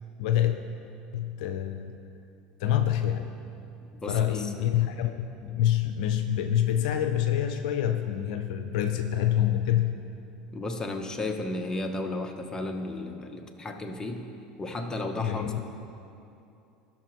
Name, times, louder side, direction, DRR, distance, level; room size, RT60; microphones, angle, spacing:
voice 1, 0.2-0.6 1.1-1.9 2.6-3.3 4.1-10.0 15.2-15.6, left 11 dB, 70° left, 7 dB, 0.5 m, -26 dB
voice 2, 3.9-4.7 10.5-14.3 14.6-15.6, left 2 dB, 15° left, 4 dB, 1.0 m, -34 dB
16.0 x 5.9 x 3.1 m, 2.7 s
hypercardioid pair, 80°, 4 cm